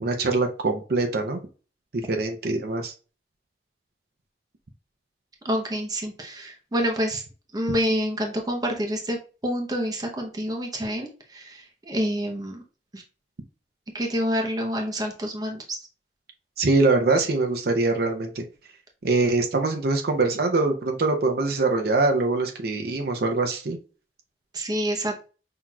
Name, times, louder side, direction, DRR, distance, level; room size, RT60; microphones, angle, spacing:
voice 1, 0.0-1.4 2.1-2.9 16.6-18.4 19.0-23.8, right 3 dB, 60° right, 4 dB, 0.6 m, -23 dB
voice 2, 5.4-7.2 7.5-9.2 9.4-12.6 12.9-13.0 13.9-15.8 24.5-25.3, equal, 20° right, 2 dB, 0.8 m, -27 dB
5.8 x 2.9 x 2.3 m, 0.36 s
head